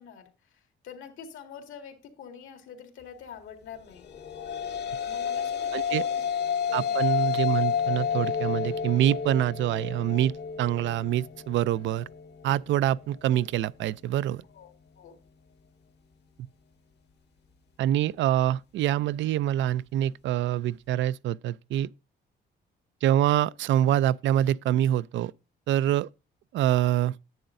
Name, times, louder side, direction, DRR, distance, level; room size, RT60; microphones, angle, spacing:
voice 1, 0.0-4.1 5.0-6.3 6.7-7.0 14.5-15.2, left 7 dB, 80° left, 2.1 m, -46 dB
sound 1, 4.0-12.6, left 7 dB, 60° left, 1.2 m, -30 dB
voice 2, 5.7-6.0 6.7-10.3 10.6-12.1 12.4-14.4 17.8-21.9 23.0-25.3 25.7-26.1 26.5-27.2, right 12 dB, 70° right, 0.4 m, -25 dB
10.5 x 7.8 x 2.5 m
cardioid pair, 90°, 20 cm